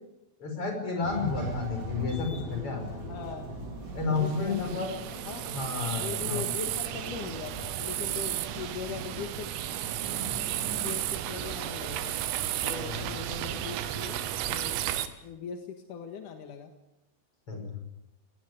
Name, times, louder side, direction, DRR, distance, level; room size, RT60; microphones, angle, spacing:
voice 1, 0.4-2.8 3.9-4.9 5.5-6.4 12.8-13.0 17.5-17.8, left 4 dB, 25° left, 4 dB, 6.1 m, -31 dB
sound 1, 1.0-11.0, right 1 dB, 35° right, 5.2 m, -41 dB
voice 2, 2.9-3.5 4.1-4.9 5.3-5.4 6.0-9.5 10.8-12.2 12.6-14.8 15.2-16.7, left 7 dB, 60° left, 5 dB, 2.2 m, -40 dB
sound 2, 4.2-15.1, right 12 dB, 90° right, 3.9 m, -33 dB
21.0 x 19.0 x 9.8 m, 0.90 s
omnidirectional pair, 5.9 m